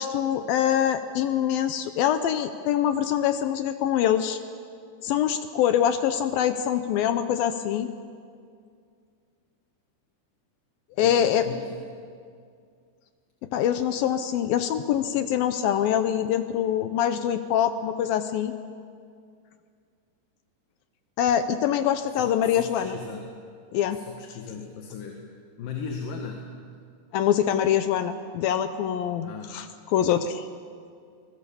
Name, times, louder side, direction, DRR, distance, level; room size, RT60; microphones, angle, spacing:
voice 1, 0.0-4.4 5.0-7.9 11.0-11.5 13.5-18.5 21.2-23.0 23.7-24.0 27.1-29.7 29.9-30.5, left 10 dB, 75° left, 9 dB, 2.3 m, -24 dB
voice 2, 11.0-11.7 22.1-23.3 23.9-25.3 25.6-26.6 29.2-29.6, left 5 dB, 60° left, 2 dB, 3.1 m, -37 dB
29.0 x 20.5 x 7.1 m, 2.2 s
omnidirectional pair, 4.9 m